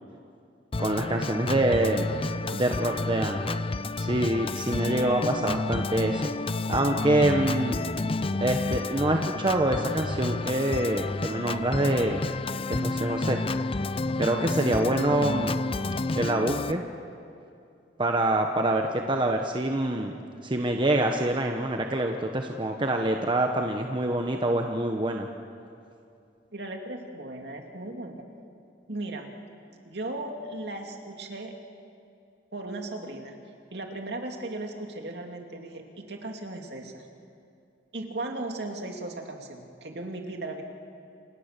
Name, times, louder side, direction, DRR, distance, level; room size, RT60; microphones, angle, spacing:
Organ, 0.7-16.7, left 3 dB, 30° left, 0.6 m, -30 dB
voice 1, 0.8-2.1 2.5-3.6 4.0-6.2 6.7-7.8 8.4-12.2 12.7-13.4 14.2-15.6 16.1-16.8 18.0-20.1 20.4-25.3, right 1 dB, 25° right, 3 dB, 1.2 m, -26 dB
voice 2, 26.5-28.3 28.9-29.3 29.8-31.5 32.5-33.4 33.7-37.1 37.9-40.6, right 2 dB, 65° right, 2 dB, 2.8 m, -36 dB
28.5 x 27.0 x 6.8 m, 2.5 s
head